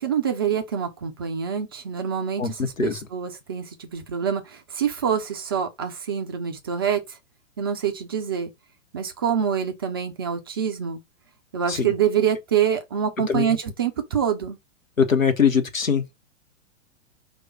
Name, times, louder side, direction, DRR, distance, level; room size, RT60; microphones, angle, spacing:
voice 1, 0.0-7.2 7.6-8.5 8.9-11.0 11.5-14.6, right 8 dB, 20° right, 0.3 m, -26 dB
voice 2, 2.4-3.0 11.7-11.9 13.3-13.6 15.0-16.1, left 6 dB, 80° left, 1.0 m, -22 dB
4.8 x 2.3 x 4.2 m
figure-of-eight pair, 105°, 39 cm